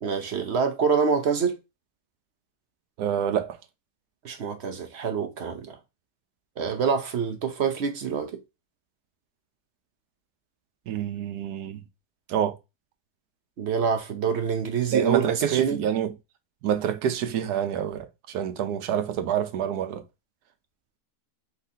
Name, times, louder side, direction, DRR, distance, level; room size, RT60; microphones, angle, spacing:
voice 1, 0.0-1.6 4.2-5.8 6.6-8.3 13.6-15.8, right 6 dB, 55° right, 0.8 m, -26 dB
voice 2, 3.0-3.6 10.9-11.8 12.3-12.5 14.9-16.1 16.6-20.0, right 9 dB, 90° right, 1.2 m, -27 dB
4.2 x 3.8 x 2.7 m
omnidirectional pair, 1.6 m